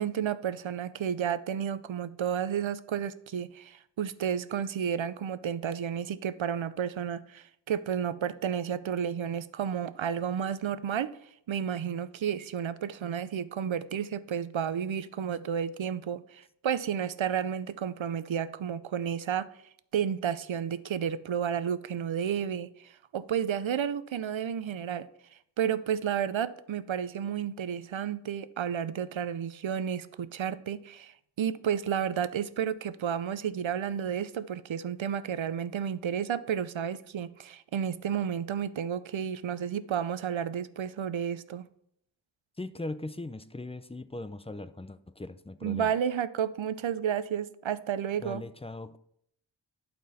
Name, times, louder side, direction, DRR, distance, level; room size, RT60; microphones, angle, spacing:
voice 1, 0.0-11.1 11.5-19.5 19.9-25.1 25.6-41.6 45.6-48.4, right 8 dB, 85° right, 15 dB, 0.6 m, -31 dB
voice 2, 42.6-45.9 48.2-49.0, left 2 dB, 15° left, 13 dB, 0.4 m, -39 dB
11.5 x 4.4 x 4.1 m, 0.71 s
wide cardioid pair, 45°, 45 cm